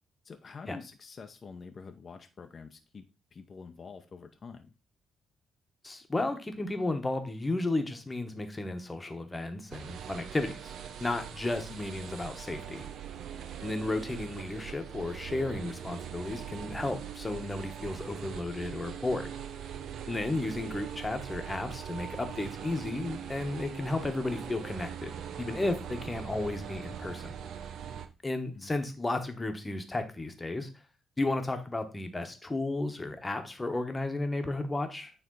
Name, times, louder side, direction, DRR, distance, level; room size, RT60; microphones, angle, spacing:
voice 1, 0.2-3.1 3.3-4.7 11.7-11.9 20.6-20.8 28.5-28.7, left 5 dB, 40° left, 5 dB, 0.7 m, -47 dB
voice 2, 5.8-10.7 11.0-12.8 13.6-19.3 20.1-27.3 28.2-30.7 31.2-35.1, left 2 dB, 20° left, 7 dB, 1.2 m, -33 dB
sound 1, 9.7-28.1, right 9 dB, 70° right, 0.6 m, -41 dB
9.0 x 3.4 x 3.9 m, 0.32 s
cardioid pair, 90°, 0 cm